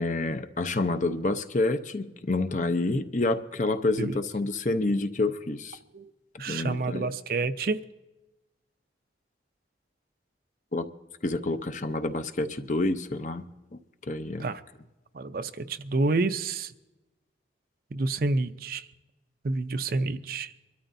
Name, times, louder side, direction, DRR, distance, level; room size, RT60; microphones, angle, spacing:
voice 1, 0.0-5.8 6.5-7.1 10.7-10.9 11.2-13.8 14.1-14.5, left 2 dB, 40° left, 0.7 m, -28 dB
voice 2, 6.4-7.8 14.4-14.6 15.1-16.7 17.9-18.9 19.4-20.5, right 3 dB, 50° right, 0.5 m, -28 dB
24.5 x 13.0 x 2.6 m
head